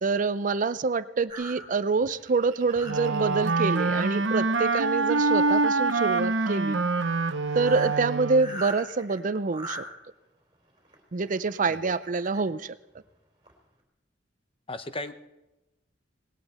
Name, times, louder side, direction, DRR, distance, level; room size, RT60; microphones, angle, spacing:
voice 1, 0.0-6.8 7.5-9.9 11.1-12.7, right 4 dB, 45° right, 14 dB, 0.5 m, -26 dB
sound 1, 1.3-3.8 4.3-4.6 4.9-6.6 7.1-7.2 7.4-9.8 10.8-12.4 13.0-13.1 13.5-13.6, right 1 dB, 25° right, 3.5 m, -42 dB
Wind instrument woodwind instrument, 2.8-8.6, right 3 dB, 70° right, 0.9 m, -25 dB
voice 2, 14.7-15.1, left 2 dB, 30° left, 11 dB, 0.9 m, -36 dB
19.0 x 17.0 x 4.2 m, 0.97 s
head